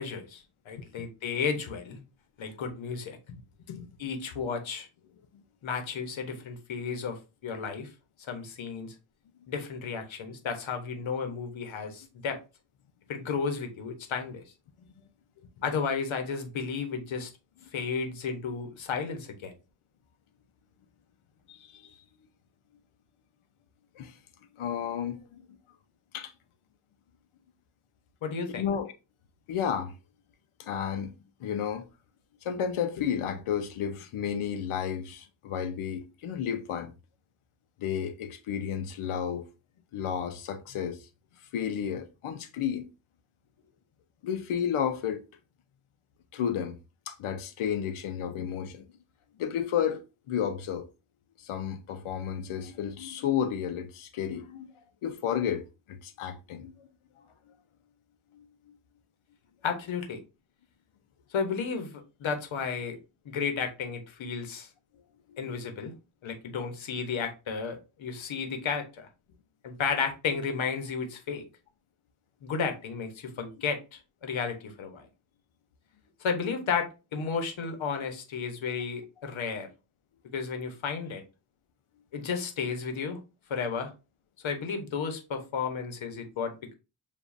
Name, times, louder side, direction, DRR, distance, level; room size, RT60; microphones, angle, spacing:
voice 1, 0.0-2.0 2.4-3.2 4.0-4.9 5.6-7.9 8.3-8.9 9.5-12.4 13.1-14.4 15.6-17.3 17.7-19.5 28.2-28.6 59.6-60.2 61.3-63.0 63.2-64.7 65.4-65.9 66.2-69.1 69.6-71.4 72.4-75.1 76.2-79.7 80.3-81.2 82.1-83.2 83.5-83.9 84.4-86.7, left 5 dB, 70° left, 1.1 m, -33 dB
voice 2, 21.5-22.0 24.0-24.2 24.6-25.4 26.1-26.3 28.6-28.9 29.5-29.9 30.6-31.1 31.4-31.9 32.4-36.9 37.8-39.5 39.9-41.1 41.5-42.9 44.2-45.2 46.3-46.8 47.1-48.9 49.4-50.0 50.3-50.9 51.4-54.7 55.0-56.9 58.3-58.8 65.3-65.4, left 8 dB, 90° left, 0.8 m, -32 dB
7.0 x 2.7 x 2.6 m
wide cardioid pair, 110°, 48 cm